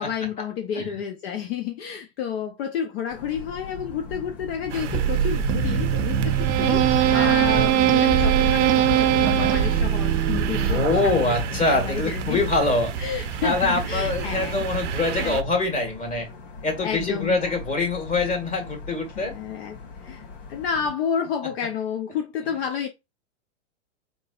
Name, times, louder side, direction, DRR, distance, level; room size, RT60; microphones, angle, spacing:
voice 1, 0.0-12.4 13.0-14.7 15.2-15.4 16.8-17.6 19.2-20.2 20.5-22.9, left 8 dB, 55° left, 0.8 m, -30 dB
sound 1, 3.1-20.9, left 3 dB, 90° left, 2.4 m, -34 dB
sound 2, 4.7-15.4, right 10 dB, 75° right, 0.6 m, -31 dB
sound 3, 4.9-11.2, right 11 dB, 25° right, 0.3 m, -21 dB
voice 2, 10.7-12.9 13.4-16.3 16.6-19.3, left 3 dB, 20° left, 1.7 m, -24 dB
3.9 x 3.9 x 2.4 m
hypercardioid pair, 120°, 37 cm